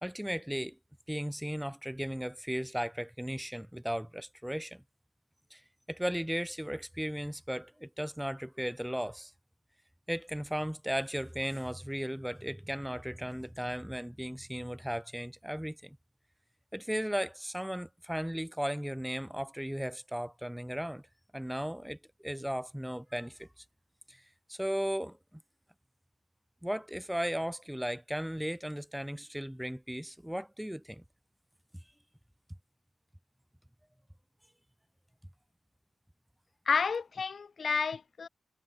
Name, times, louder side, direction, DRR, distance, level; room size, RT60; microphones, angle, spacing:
voice 1, 0.0-0.8 1.1-4.8 5.5-5.6 5.9-9.3 10.1-16.0 16.7-21.0 21.3-23.6 24.1-24.2 24.5-25.4 26.6-31.0, equal, 5° right, 1.7 m, -36 dB
voice 2, 36.7-38.3, left 5 dB, 60° left, 3.5 m, -30 dB
cardioid pair, 65°, 0 cm